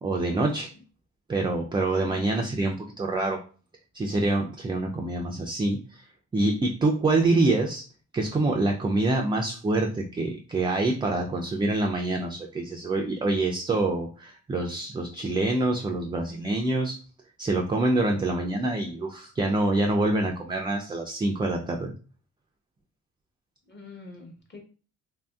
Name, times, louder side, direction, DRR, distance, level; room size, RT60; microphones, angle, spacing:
voice 1, 0.0-0.7 1.3-3.4 3.9-6.0 6.3-7.8 8.1-17.0 17.4-21.9, right 2 dB, 15° right, 1 dB, 0.3 m, -26 dB
voice 2, 1.9-2.7 23.7-24.6, left 3 dB, 35° left, 1 dB, 0.9 m, -46 dB
2.8 x 2.6 x 2.3 m, 0.38 s
cardioid pair, 90°, 30 cm